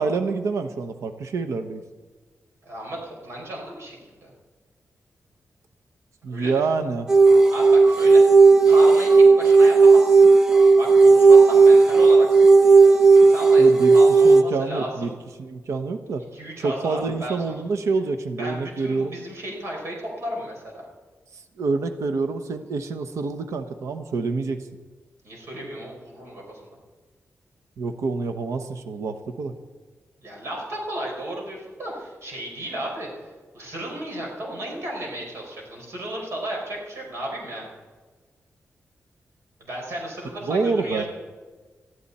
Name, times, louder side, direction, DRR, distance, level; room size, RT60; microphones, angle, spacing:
voice 1, 0.0-1.8 6.2-7.1 13.6-14.0 14.2-15.1 15.4-16.2 16.6-19.2 21.3-24.6 27.8-29.5 40.5-41.0, right 4 dB, 85° right, 8 dB, 1.0 m, -27 dB
voice 2, 2.7-4.3 6.3-6.6 7.5-8.2 8.7-10.2 10.8-15.1 16.3-17.5 18.4-20.8 25.2-26.7 30.2-33.1 33.5-37.7 39.6-41.1, right 1 dB, 65° right, -2 dB, 5.6 m, -34 dB
sound 1, 7.1-14.4, right 4 dB, 10° right, 1.0 m, -13 dB
20.5 x 14.0 x 4.3 m, 1.4 s
wide cardioid pair, 155°, 5 cm